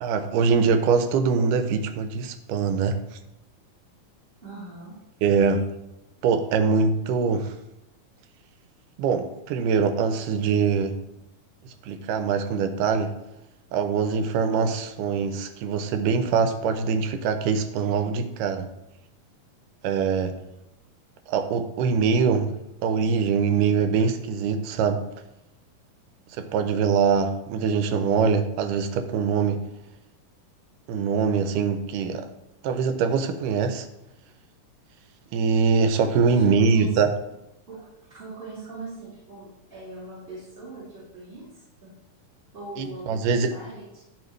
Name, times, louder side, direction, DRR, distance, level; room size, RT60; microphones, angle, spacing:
voice 1, 0.0-3.0 5.2-5.7 6.2-7.5 9.0-10.9 11.9-13.1 13.7-18.7 19.8-20.4 21.3-22.5 22.8-25.0 26.4-29.7 30.9-32.3 32.6-33.9 35.3-37.1 42.8-43.5, right 5 dB, 90° right, 8 dB, 2.2 m, -23 dB
voice 2, 4.4-5.0 36.3-37.1 37.7-41.9 42.5-44.0, right 2 dB, 20° right, -12 dB, 2.8 m, -41 dB
11.5 x 4.5 x 3.2 m, 0.90 s
omnidirectional pair, 3.7 m